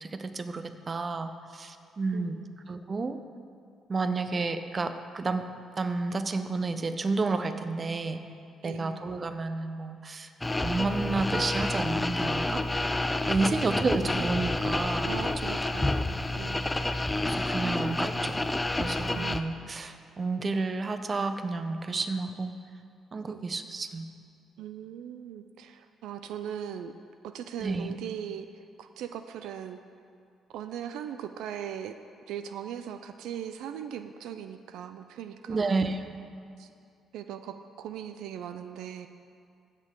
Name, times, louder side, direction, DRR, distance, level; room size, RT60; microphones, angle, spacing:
voice 1, 0.0-2.4 2.7-3.2 3.9-5.5 5.8-8.2 8.6-10.3 10.6-12.6 13.3-15.1 17.2-18.4 18.7-22.5 23.1-24.1 27.6-28.0 35.5-36.1, right 3 dB, 35° right, 9 dB, 0.6 m, -31 dB
voice 2, 2.1-2.5 8.6-9.0 13.4-14.0 15.0-16.6 19.1-19.6 23.3-23.5 24.6-26.9 27.2-28.5 28.8-29.8 30.5-32.0 32.3-35.8 36.6-36.7 37.1-39.1, right 9 dB, 85° right, 9 dB, 0.3 m, -39 dB
sound 1, 10.4-19.4, left 2 dB, 15° left, 0.4 m, -29 dB
16.0 x 6.6 x 3.7 m, 2.5 s
cardioid pair, 90°, 0 cm